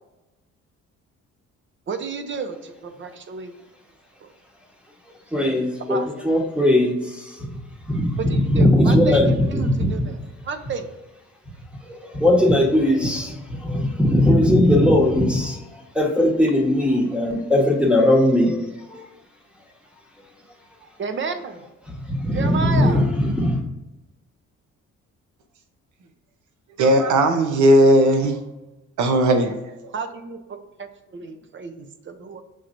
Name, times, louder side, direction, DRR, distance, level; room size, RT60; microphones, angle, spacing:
voice 1, 1.9-3.5 4.2-4.3 5.9-6.1 8.2-10.2 10.4-10.9 21.0-21.6 22.3-23.0 29.9-32.4, right 5 dB, 40° right, 8 dB, 0.6 m, -31 dB
voice 2, 5.3-6.0 6.2-7.6 7.9-10.0 11.8-19.0 21.9-23.6, left 1 dB, 5° right, 0 dB, 1.2 m, -19 dB
voice 3, 26.8-28.4 29.0-29.9, right 1 dB, 75° right, 6 dB, 0.8 m, -17 dB
6.3 x 3.0 x 2.5 m, 1.0 s
cardioid pair, 90°, 30 cm